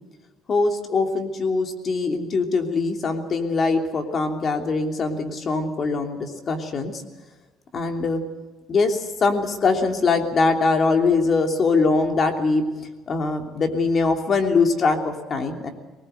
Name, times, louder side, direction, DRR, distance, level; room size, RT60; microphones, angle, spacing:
voice 1, 0.5-7.0 7.7-8.2 8.7-12.6 13.1-15.7, left 4 dB, 35° left, 4 dB, 3.0 m, -22 dB
23.0 x 20.0 x 8.0 m, 1.2 s
cardioid pair, 140°, 0 cm